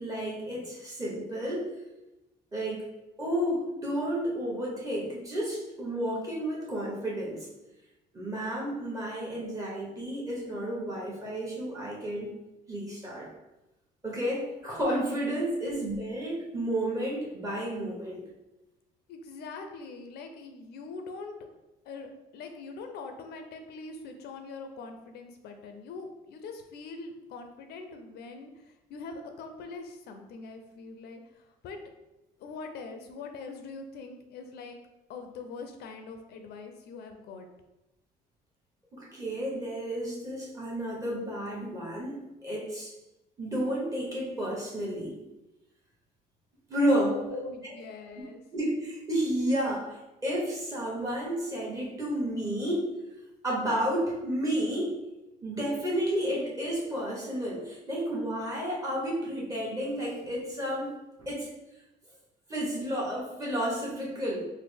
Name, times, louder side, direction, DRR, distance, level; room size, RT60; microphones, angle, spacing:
voice 1, 0.0-1.7 2.5-2.9 3.2-7.5 8.1-12.3 12.7-13.3 14.0-18.3 38.9-42.9 43.4-45.2 46.7-47.4 48.5-52.9 53.4-55.0 55.4-61.5 62.5-64.4, equal, 20° right, -4 dB, 1.1 m, -31 dB
voice 2, 19.1-21.4 21.8-31.8 32.4-34.8 35.1-37.5 47.1-48.4, left 4 dB, 70° left, 6 dB, 0.5 m, -43 dB
4.0 x 2.1 x 3.3 m, 0.98 s
cardioid pair, 110°, 17 cm